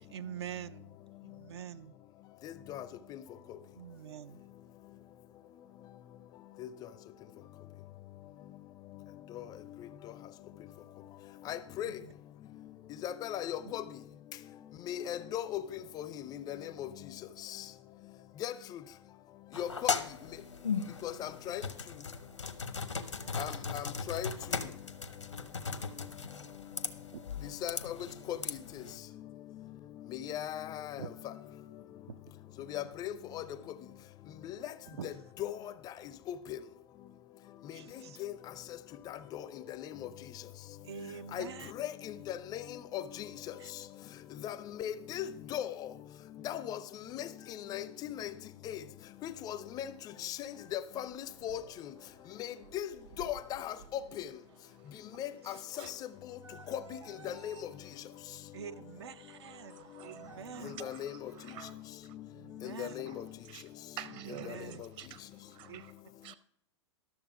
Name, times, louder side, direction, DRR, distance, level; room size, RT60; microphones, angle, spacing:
voice 1, 0.1-1.0 1.2-2.0 3.8-4.4 11.9-12.1 23.0-23.4 27.1-27.3 31.0-31.1 32.1-32.2 35.0-35.1 37.7-38.2 40.8-41.7 43.6-43.7 55.4-55.6 58.5-60.8 62.3-63.1 64.2-64.8 65.7-65.8, right 8 dB, 65° right, 0.5 m, -46 dB
voice 2, 2.4-2.8 3.1-3.2 6.6-6.7 11.5-11.9 13.0-13.8 14.9-15.6 16.0-16.9 18.4-18.5 19.6-19.9 21.0-21.6 23.4-24.3 27.6-28.0 28.3-28.6 30.1-31.0 32.7-33.4 34.4-34.6 35.0-35.1 35.4-35.6 36.3-36.6 38.2-38.3 39.1-39.4 39.8-39.9 41.3-41.5 41.8-42.6 42.9-43.3 44.4-45.7 46.4-46.8 47.1-47.3 47.7-48.3 48.7-48.8 49.2-49.9 50.2-51.6 52.7-52.9 53.2-53.7 54.2-54.3 55.2-55.8 56.7-57.0 57.2-57.5 60.6-61.2 62.6-63.2, left 11 dB, 25° left, 0.5 m, -38 dB
sound 1, 19.5-29.0, left 5 dB, 85° left, 0.9 m, -38 dB
sound 2, 49.2-61.7, right 5 dB, 85° right, 2.1 m, -57 dB
voice 3, 59.5-60.2 60.5-61.7 63.1-63.2 63.5-63.6 64.0-65.2 65.5-65.9 66.2-66.3, right 11 dB, 35° right, 0.8 m, -48 dB
12.0 x 7.0 x 4.8 m
figure-of-eight pair, 105°, 15 cm